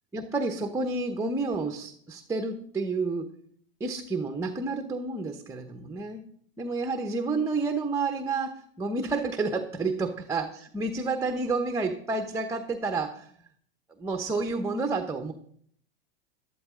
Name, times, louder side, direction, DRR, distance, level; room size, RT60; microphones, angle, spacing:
voice 1, 0.1-3.3 3.8-6.3 6.6-10.5 10.7-13.3 14.0-15.3, right 3 dB, 10° right, 6 dB, 0.9 m, -30 dB
13.0 x 12.5 x 3.7 m, 0.63 s
supercardioid pair, 120°, 30 cm